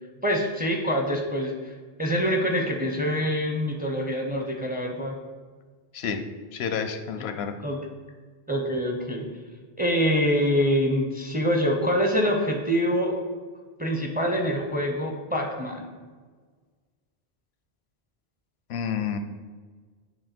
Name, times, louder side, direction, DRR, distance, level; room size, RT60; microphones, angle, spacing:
voice 1, 0.2-1.7 2.0-5.1 7.6-7.8 8.5-9.3 9.8-13.2 13.8-15.9, equal, 10° right, 2 dB, 0.5 m, -25 dB
voice 2, 6.5-7.5 18.7-19.2, left 7 dB, 85° left, 8 dB, 0.8 m, -29 dB
6.9 x 3.2 x 4.3 m, 1.5 s
omnidirectional pair, 1.0 m